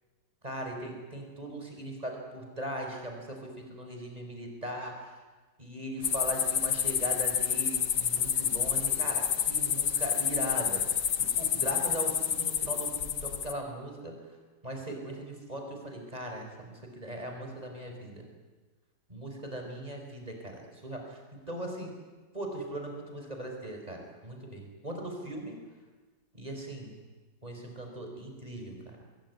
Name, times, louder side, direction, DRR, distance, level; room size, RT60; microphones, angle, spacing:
voice 1, 0.4-5.1 5.6-11.1 11.3-14.1 14.6-18.2 19.1-21.2 21.5-21.9 22.3-25.6 26.3-26.9 27.4-28.8, right 1 dB, 20° right, 2 dB, 5.2 m, -39 dB
sound 1, 6.0-13.5, left 8 dB, 75° left, 1.9 m, -29 dB
25.5 x 20.5 x 9.6 m, 1.3 s
omnidirectional pair, 1.9 m